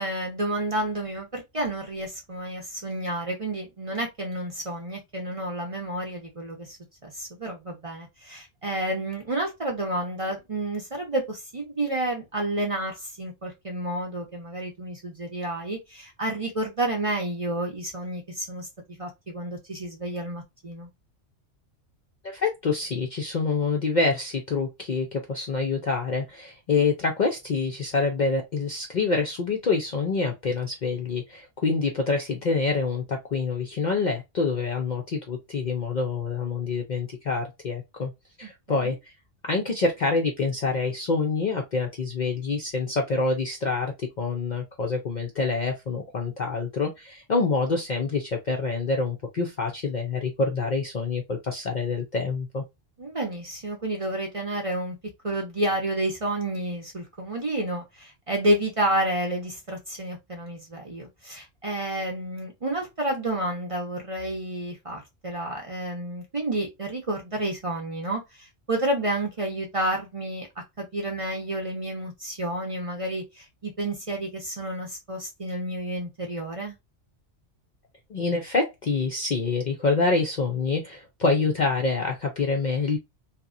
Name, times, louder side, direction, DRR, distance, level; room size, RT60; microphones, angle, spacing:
voice 1, 0.0-6.8 7.0-18.7 19.0-20.9 38.4-38.5 38.8-38.9 53.0-55.0 55.2-70.5 70.8-76.8, right 1 dB, 35° right, 0.6 m, -30 dB
voice 2, 22.2-38.1 38.4-39.1 39.4-52.6 78.1-83.0, left 4 dB, 50° left, 0.5 m, -26 dB
2.8 x 2.3 x 2.4 m
omnidirectional pair, 1.3 m